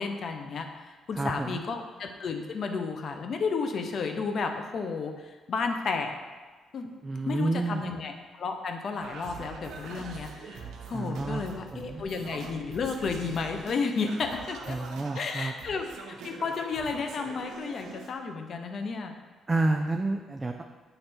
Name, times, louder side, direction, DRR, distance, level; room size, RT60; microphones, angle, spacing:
voice 1, 0.0-6.1 6.7-6.9 7.3-8.1 8.4-14.8 15.1-15.8 16.2-19.1, left 4 dB, 55° left, 5 dB, 0.7 m, -32 dB
voice 2, 1.1-1.6 7.0-7.8 10.9-11.4 11.7-12.0 14.7-15.5 19.5-20.6, right 2 dB, 25° right, 3 dB, 0.4 m, -29 dB
Singing, 9.0-18.1, right 4 dB, 75° right, 0.8 m, -44 dB
7.8 x 3.3 x 4.4 m, 1.3 s
cardioid pair, 90°, 0 cm